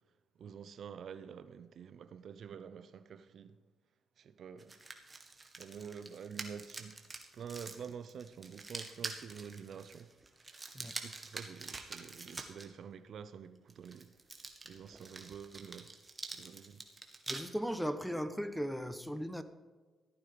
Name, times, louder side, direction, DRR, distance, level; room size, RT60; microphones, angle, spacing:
voice 1, 0.4-3.6 4.2-4.8 5.6-7.1 7.3-10.1 10.7-14.1 14.6-15.9 16.3-16.9, right 7 dB, 65° right, 0.6 m, -48 dB
sound 1, 4.6-12.7 13.7-17.4, right 3 dB, 25° right, 1.8 m, -46 dB
voice 2, 17.3-19.4, equal, ahead, 1.0 m, -37 dB
14.5 x 9.1 x 5.0 m
cardioid pair, 75°, 0 cm